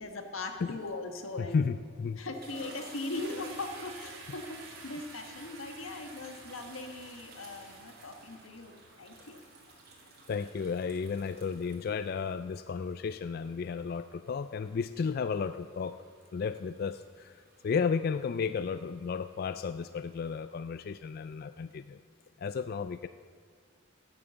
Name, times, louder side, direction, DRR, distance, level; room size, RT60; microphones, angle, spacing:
voice 1, 0.0-1.7 2.2-9.4, left 2 dB, 90° left, 5 dB, 1.5 m, -40 dB
voice 2, 1.4-2.2 10.3-16.0 16.3-17.4 17.6-22.0 22.4-23.1, left 5 dB, 50° left, 11 dB, 0.3 m, -33 dB
sound 1, 1.6-1.8 2.2-20.4, right 3 dB, 50° right, 2.7 m, -54 dB
sound 2, 3.1-11.8, right 3 dB, 90° right, 2.1 m, -54 dB
15.0 x 8.8 x 7.0 m, 2.1 s
head